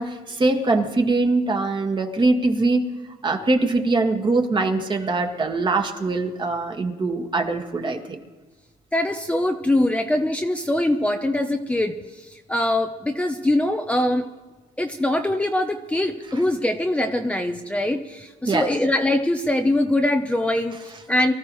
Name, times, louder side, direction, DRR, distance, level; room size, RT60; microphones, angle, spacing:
voice 1, 0.0-2.8 3.2-8.2 18.5-18.7, right 3 dB, 25° right, 3 dB, 1.8 m, -22 dB
voice 2, 8.9-14.2 14.8-21.3, left 1 dB, 5° left, 4 dB, 0.8 m, -23 dB
24.0 x 14.0 x 3.2 m, 1.3 s
cardioid pair, 110°, 17 cm